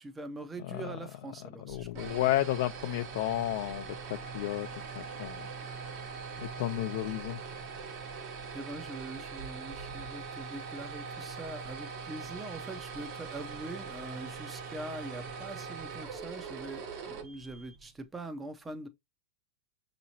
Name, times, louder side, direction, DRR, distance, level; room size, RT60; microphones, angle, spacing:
voice 1, 0.0-2.3 8.5-18.9, right 2 dB, 10° right, 0.6 m, -43 dB
voice 2, 1.4-4.7 4.9-7.4 7.7-7.8 8.3-8.5, left 14 dB, 65° left, 0.4 m, -33 dB
sound 1, 1.7-17.9, right 5 dB, 45° right, 1.1 m, -42 dB
6.0 x 3.0 x 2.7 m
supercardioid pair, 150°, 0 cm